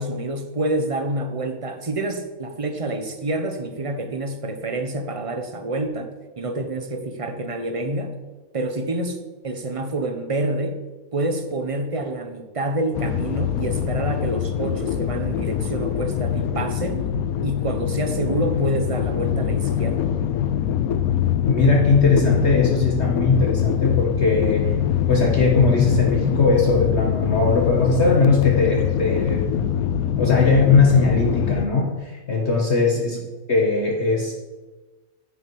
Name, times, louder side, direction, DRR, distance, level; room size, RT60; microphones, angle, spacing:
voice 1, 0.0-8.1 8.5-9.2 9.4-10.8 11.1-17.1 17.4-20.1 33.1-33.2, right 2 dB, 25° right, 7 dB, 0.9 m, -27 dB
sound 1, 12.9-31.7, left 9 dB, 75° left, 1.0 m, -23 dB
voice 2, 21.4-24.7 25.1-29.5 30.2-33.2 33.5-34.3, left 4 dB, 45° left, -1 dB, 1.6 m, -19 dB
9.9 x 9.2 x 4.8 m, 1.2 s
omnidirectional pair, 1.6 m